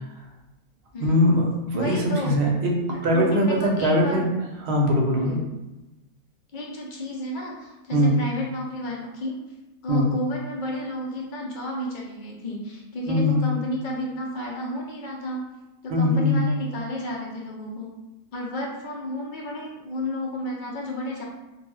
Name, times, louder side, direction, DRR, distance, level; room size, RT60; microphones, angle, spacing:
voice 1, 1.0-2.8 3.0-4.3 4.6-5.4 7.9-8.2 9.9-10.1 13.1-13.4 15.9-16.5, left 1 dB, 65° right, 0 dB, 0.8 m, -21 dB
voice 2, 1.7-2.3 2.9-4.2 5.1-5.4 6.5-9.4 9.8-15.4 15.8-17.9 18.3-21.2, equal, 55° left, -2 dB, 0.6 m, -32 dB
2.6 x 2.2 x 3.0 m, 0.99 s
omnidirectional pair, 1.3 m